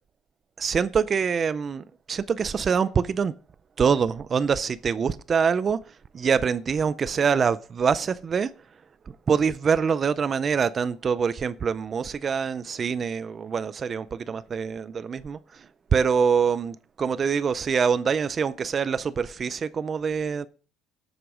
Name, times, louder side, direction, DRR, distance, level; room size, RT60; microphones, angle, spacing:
voice 1, 0.6-3.3 3.8-5.8 6.1-8.5 9.1-15.7 15.9-20.5, right 6 dB, 30° right, 0.4 m, -25 dB
11.5 x 7.9 x 4.9 m
cardioid pair, 140°, 0 cm